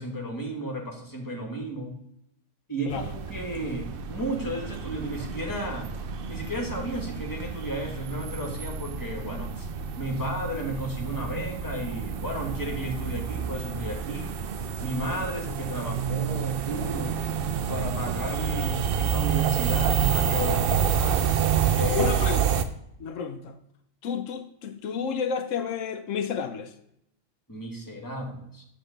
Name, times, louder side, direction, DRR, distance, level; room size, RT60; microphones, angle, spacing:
voice 1, 0.0-2.0 2.7-5.9 6.3-9.7 10.0-14.3 14.8-17.2 17.7-21.3 21.7-22.1 27.5-28.6, equal, 15° left, 1.5 m, -33 dB
sound 1, 2.9-22.6, right 8 dB, 60° right, 0.7 m, -28 dB
voice 2, 21.9-22.4 23.0-23.6 24.0-26.7, left 6 dB, 85° left, 1.0 m, -31 dB
7.9 x 3.5 x 6.6 m
omnidirectional pair, 1.3 m